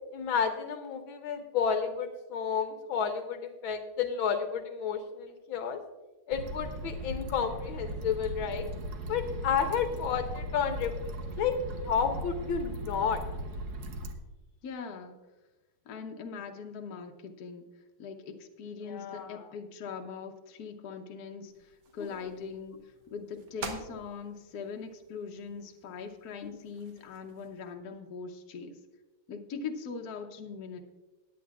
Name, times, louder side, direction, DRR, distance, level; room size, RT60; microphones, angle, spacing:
voice 1, 0.1-5.8 6.3-8.7 9.1-10.9 11.4-11.6 11.8-13.2 18.9-19.4 26.4-26.5, left 7 dB, 75° left, 7 dB, 1.5 m, -31 dB
sound 1, 6.3-14.1, right 1 dB, 55° right, 1.3 m, -38 dB
voice 2, 14.6-15.2 15.8-17.7 18.0-28.8 29.3-30.8, left 5 dB, 55° left, 3 dB, 1.2 m, -41 dB
sound 2, 21.5-27.7, right 4 dB, 75° right, 2.1 m, -48 dB
18.0 x 9.3 x 2.4 m, 1.1 s
omnidirectional pair, 2.3 m